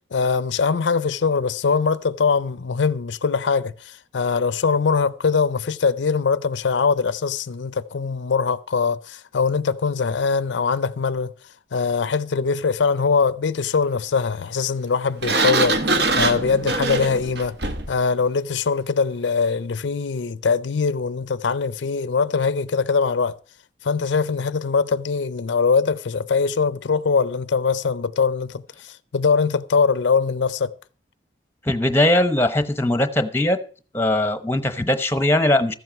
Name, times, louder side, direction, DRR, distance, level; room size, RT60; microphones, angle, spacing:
voice 1, 0.1-11.3 11.7-17.6 17.9-23.4 23.8-30.7, left 5 dB, 85° left, 0.5 m, -22 dB
Sliding door, 15.2-18.0, right 3 dB, 65° right, 1.1 m, -22 dB
voice 2, 31.6-33.6 33.9-35.7, left 1 dB, 15° left, 0.8 m, -20 dB
14.0 x 7.8 x 5.8 m
head